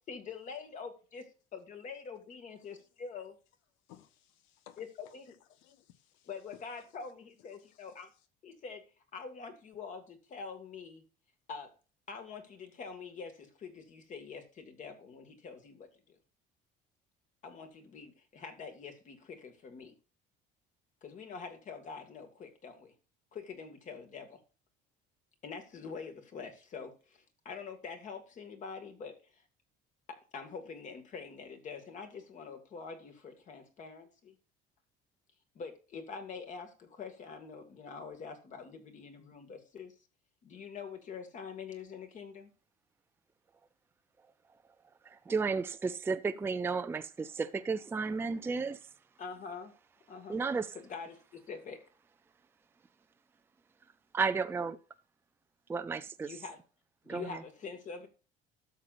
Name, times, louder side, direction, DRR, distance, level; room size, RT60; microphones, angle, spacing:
voice 1, 0.1-1.3 1.5-3.3 4.8-5.3 6.3-8.1 8.4-8.8 9.1-11.0 11.5-11.7 12.1-16.2 17.4-19.9 21.0-22.9 23.3-24.4 25.4-29.4 30.1-34.4 35.5-39.9 40.4-42.5 49.2-49.7 50.1-50.4 50.7-51.8 56.2-56.6 57.0-58.1, left 5 dB, 40° left, 2.1 m, -45 dB
voice 2, 3.9-5.2 5.5-6.6 7.8-8.0, left 11 dB, 85° left, 1.3 m, -58 dB
voice 3, 45.1-48.8 50.3-50.7 54.1-54.8 55.7-56.3 57.1-57.4, right 4 dB, 10° right, 0.4 m, -33 dB
12.5 x 6.6 x 2.6 m
cardioid pair, 145°, 19 cm